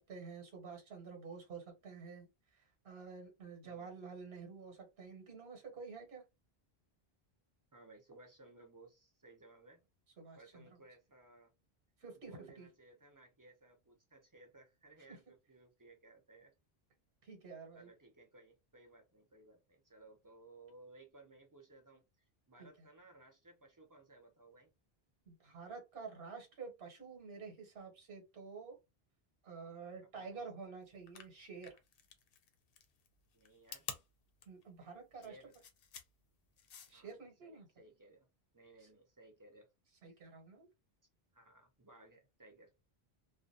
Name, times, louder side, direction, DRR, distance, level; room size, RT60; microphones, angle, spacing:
voice 1, 0.0-6.3 10.2-10.6 12.0-12.7 15.1-15.2 17.2-17.9 22.6-22.7 25.3-28.8 29.4-31.8 34.5-35.4 36.9-37.7 38.8-38.9 40.0-40.7, right 5 dB, 80° right, 1.1 m, -50 dB
voice 2, 7.7-9.8 10.4-11.5 12.2-16.5 17.7-22.0 22.5-24.7 30.2-30.4 33.3-33.9 35.1-35.6 36.9-37.2 37.4-38.3 38.5-39.7 41.3-42.7, right 2 dB, 25° right, 0.4 m, -60 dB
sound 1, 30.9-37.1, left 7 dB, 70° left, 0.7 m, -50 dB
2.4 x 2.1 x 2.6 m
omnidirectional pair, 1.0 m